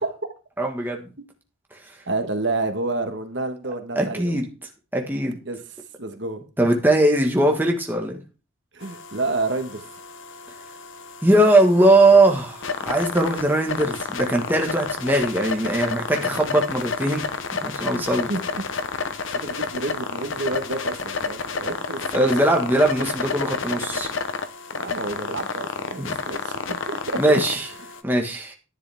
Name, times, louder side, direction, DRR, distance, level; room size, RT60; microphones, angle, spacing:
voice 1, 0.6-1.1 3.9-4.5 4.9-5.4 6.6-8.2 11.2-17.2 17.6-18.3 22.1-24.1 26.0-26.2 27.2-27.6 28.0-28.5, right 1 dB, 10° right, 2 dB, 1.4 m, -20 dB
voice 2, 2.1-4.3 5.4-5.6 6.0-6.4 8.7-9.8 17.9-18.7 19.4-22.3 24.7-27.4 27.8-27.9, right 2 dB, 65° right, 7 dB, 1.4 m, -29 dB
sound 1, 8.8-28.0, left 5 dB, 80° left, 0.9 m, -31 dB
10.5 x 9.7 x 3.5 m, 0.33 s
head